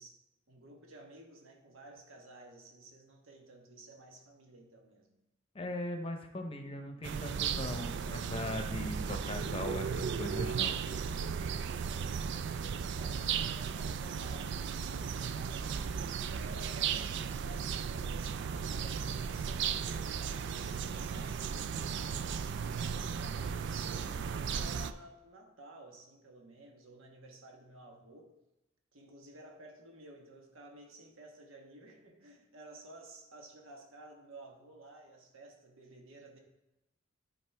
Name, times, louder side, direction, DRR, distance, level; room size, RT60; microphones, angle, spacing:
voice 1, 0.0-5.2 11.8-12.4 12.9-22.5 22.8-28.3 28.9-36.4, right 2 dB, 80° right, 2 dB, 1.3 m, -54 dB
voice 2, 5.5-10.8, left 1 dB, 25° left, 5 dB, 0.7 m, -39 dB
sound 1, 7.0-24.9, right 6 dB, 60° right, 0.3 m, -35 dB
12.0 x 4.2 x 3.4 m, 0.95 s
head